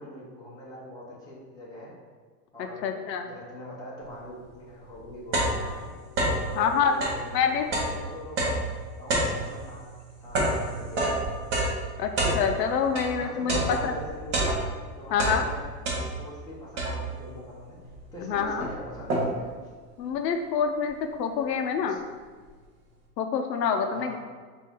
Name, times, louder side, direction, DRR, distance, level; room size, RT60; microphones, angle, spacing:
voice 1, 0.0-1.9 2.5-2.9 3.2-5.9 6.5-8.6 8.9-9.8 10.2-11.4 12.8-14.4 15.0-19.5 21.8-22.0 23.9-24.2, equal, 10° left, -7 dB, 0.8 m, -43 dB
voice 2, 2.8-3.2 6.5-6.9 7.3-7.7 12.0-13.9 15.1-15.4 18.2-18.6 20.0-22.0 23.2-24.2, left 6 dB, 85° left, 5 dB, 0.7 m, -26 dB
sound 1, 4.4-4.5 4.9-6.5 6.9-13.2 13.5-14.9 15.1-16.4 16.8-17.3 17.9-18.0 18.3-19.5, right 1 dB, 25° right, 0.7 m, -28 dB
4.1 x 2.6 x 3.6 m, 1.5 s
supercardioid pair, 150°, 49 cm